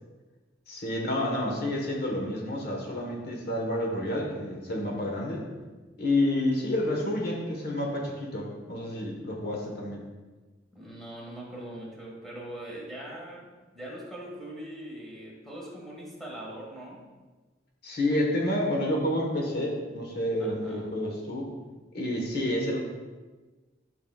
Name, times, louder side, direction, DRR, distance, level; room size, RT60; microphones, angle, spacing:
voice 1, 0.7-5.4 6.0-10.0 17.8-21.5 21.9-22.8, left 1 dB, 60° left, -1 dB, 1.3 m, -29 dB
voice 2, 10.7-17.1 20.4-20.9, right 1 dB, ahead, -4 dB, 1.7 m, -41 dB
11.0 x 5.9 x 2.4 m, 1.3 s
head